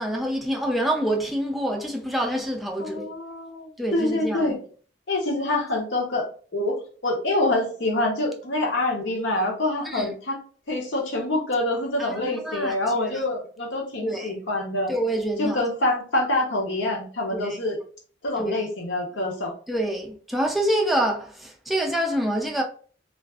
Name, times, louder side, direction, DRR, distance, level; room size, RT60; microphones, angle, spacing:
voice 1, 0.0-3.1 3.8-4.5 9.8-10.1 12.0-13.2 14.0-14.4 14.9-15.6 17.3-17.6 18.4-18.6 19.7-22.6, right 1 dB, ahead, 0.3 m, -26 dB
voice 2, 2.8-4.6 5.1-6.3 6.5-6.8 7.0-10.4 10.7-14.9 15.4-17.8 18.2-19.5, left 1 dB, 80° left, 0.8 m, -26 dB
2.4 x 2.4 x 2.3 m
head